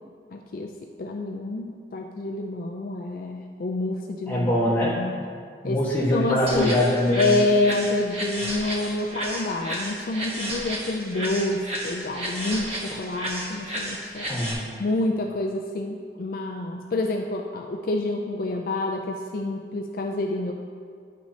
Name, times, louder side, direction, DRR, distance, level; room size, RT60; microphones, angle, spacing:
voice 1, 0.3-0.7 1.0-5.1 5.6-5.8 6.1-6.8 7.1-14.3 14.8-20.5, left 2 dB, 50° left, 2 dB, 0.4 m, -28 dB
voice 2, 4.3-5.0 5.6-7.4 14.3-14.7, left 1 dB, 10° left, -6 dB, 1.4 m, -23 dB
sound 1, 6.5-14.5, right 1 dB, 35° right, 1.1 m, -33 dB
11.0 x 6.0 x 2.8 m, 2.1 s
head